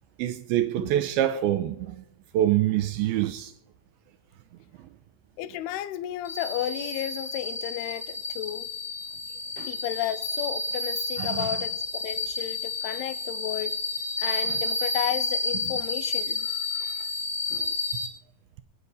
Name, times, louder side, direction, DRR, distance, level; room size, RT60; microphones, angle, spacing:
voice 1, 0.2-2.0 2.3-3.5 9.6-9.7 11.2-11.5 14.5-14.6 16.7-16.9 17.5-17.7, right 12 dB, 80° right, 2.3 m, -26 dB
voice 2, 5.4-8.7 9.7-13.8 14.2-16.5, left 13 dB, 80° left, 2.6 m, -33 dB
sound 1, 6.2-18.1, left 3 dB, 35° left, 0.9 m, -31 dB
22.0 x 9.3 x 4.0 m
omnidirectional pair, 4.7 m